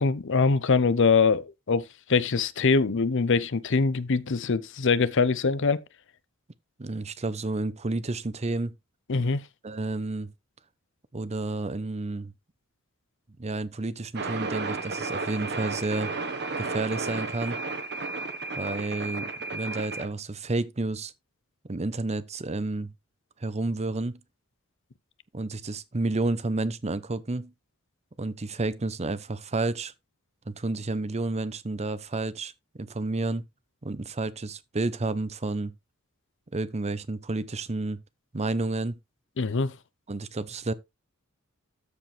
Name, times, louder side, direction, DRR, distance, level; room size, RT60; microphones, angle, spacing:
voice 1, 0.0-5.8 9.1-9.4 39.4-39.8, left 4 dB, 60° left, 0.7 m, -23 dB
voice 2, 6.8-8.7 9.6-10.3 11.1-12.3 13.4-16.1 16.6-17.6 18.6-21.1 21.7-22.9 23.4-24.2 25.3-27.5 28.2-29.9 30.5-32.5 32.8-33.4 33.8-35.7 36.5-38.0 38.3-38.9 40.1-40.7, right 2 dB, 30° right, 0.7 m, -30 dB
sound 1, 14.2-20.1, right 3 dB, 55° right, 1.4 m, -33 dB
13.5 x 4.9 x 3.3 m
head